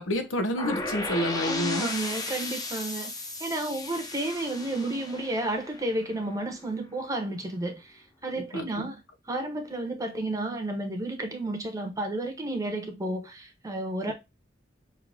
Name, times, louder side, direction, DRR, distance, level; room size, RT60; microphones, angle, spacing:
voice 1, 0.0-1.9 8.4-8.9, equal, 75° left, 0.9 m, -29 dB
sound 1, 0.6-6.4, left 2 dB, 20° left, 0.6 m, -35 dB
voice 2, 1.4-3.1 3.4-9.0 9.3-14.1, right 1 dB, 15° right, 0.8 m, -32 dB
6.3 x 2.8 x 2.6 m
head